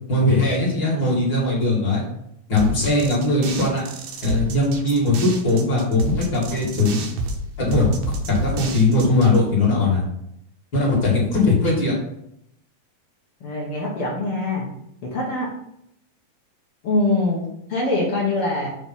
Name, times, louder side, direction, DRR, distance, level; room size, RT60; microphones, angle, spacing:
voice 1, 0.1-2.0 2.5-3.8 4.2-7.0 7.6-8.0 8.3-10.0 10.7-11.9, left 2 dB, 40° left, -5 dB, 2.3 m, -19 dB
sound 1, 2.6-9.4, right 2 dB, 75° right, 1.8 m, -30 dB
voice 2, 13.4-14.7 15.0-15.5 16.8-18.7, left 2 dB, 60° left, -3 dB, 1.5 m, -23 dB
7.4 x 3.0 x 5.4 m, 0.76 s
omnidirectional pair, 3.9 m